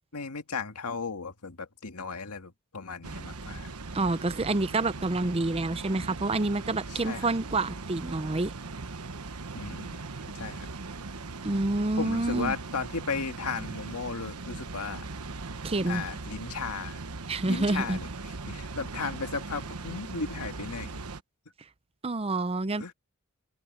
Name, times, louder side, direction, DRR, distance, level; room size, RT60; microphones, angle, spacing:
voice 1, 0.1-3.7 6.9-7.3 9.5-10.7 12.0-15.1 15.9-17.0 17.5-18.1 18.5-21.0 22.8-22.9, left 4 dB, 90° left, 1.9 m, -35 dB
Water, 3.0-21.2, right 3 dB, 85° right, 1.2 m, -39 dB
voice 2, 3.9-8.5 11.4-12.6 15.6-16.0 17.3-18.0 22.0-22.9, right 2 dB, 25° right, 0.6 m, -28 dB
open air
head